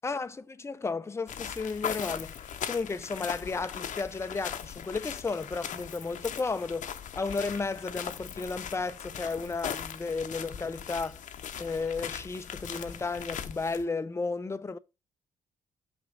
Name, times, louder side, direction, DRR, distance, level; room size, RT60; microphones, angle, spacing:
voice 1, 0.0-11.2 11.6-14.8, left 4 dB, 15° left, 0.5 m, -33 dB
sound 1, 1.3-13.8, left 9 dB, 55° left, 0.7 m, -39 dB
6.4 x 5.7 x 3.8 m
hypercardioid pair, 45°, 16 cm